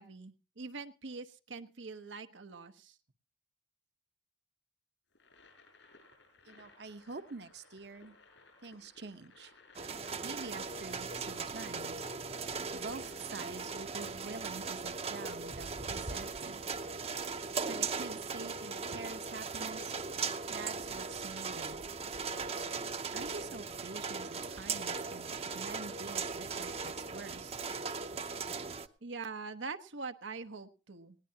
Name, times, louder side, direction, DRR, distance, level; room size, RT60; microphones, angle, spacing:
voice 1, 0.0-3.0 29.0-31.2, right 4 dB, 85° right, 7 dB, 1.0 m, -43 dB
sound 1, 5.1-14.7, left 2 dB, 80° left, 6.5 m, -61 dB
voice 2, 6.5-8.2 8.6-9.5 10.2-12.0 12.7-16.6 17.6-19.9 20.5-21.9 23.1-27.6, right 3 dB, 60° right, 9 dB, 0.9 m, -46 dB
sound 2, 9.8-28.9, right 5 dB, 35° right, 0.7 m, -38 dB
19.0 x 18.0 x 2.8 m, 0.32 s
head